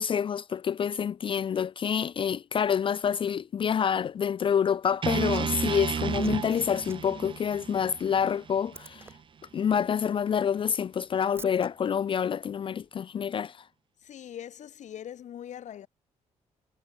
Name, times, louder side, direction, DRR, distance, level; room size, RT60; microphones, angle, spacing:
voice 1, 0.0-9.1 9.5-13.6, left 7 dB, 40° left, 0.4 m, -27 dB
Liquid, 4.8-11.7 12.8-12.9, right 3 dB, 20° right, 2.6 m, -52 dB
sound 1, 5.0-9.2, right 7 dB, 40° right, 0.8 m, -32 dB
voice 2, 14.0-15.9, left 10 dB, 70° left, 2.6 m, -42 dB
cardioid pair, 115°, 13 cm